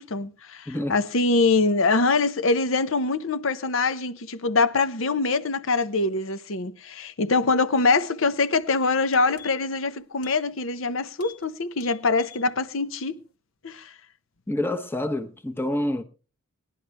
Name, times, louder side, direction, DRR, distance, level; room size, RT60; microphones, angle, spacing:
voice 1, 0.0-13.2 13.6-13.9, left 3 dB, 60° left, 0.8 m, -24 dB
sound 1, 8.5-8.6 8.9-9.8 10.2-10.4 10.7-10.9 11.2-11.4 11.7-12.5 12.8-12.9, left 8 dB, 80° left, 2.0 m, -47 dB
voice 2, 14.5-16.0, left 1 dB, 10° left, 0.9 m, -27 dB
19.5 x 11.0 x 3.4 m
head